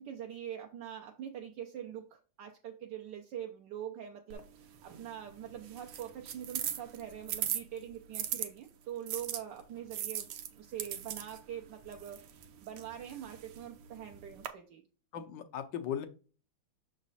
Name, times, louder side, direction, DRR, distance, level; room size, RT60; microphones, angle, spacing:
voice 1, 0.0-14.8, right 10 dB, 65° right, 2 dB, 1.3 m, -44 dB
sound 1, 4.3-8.5 9.1-14.5, right 10 dB, 90° right, 1.6 m, -40 dB
voice 2, 15.1-16.1, left 9 dB, 70° left, 8 dB, 1.3 m, -37 dB
6.5 x 4.1 x 4.0 m, 0.37 s
omnidirectional pair, 2.3 m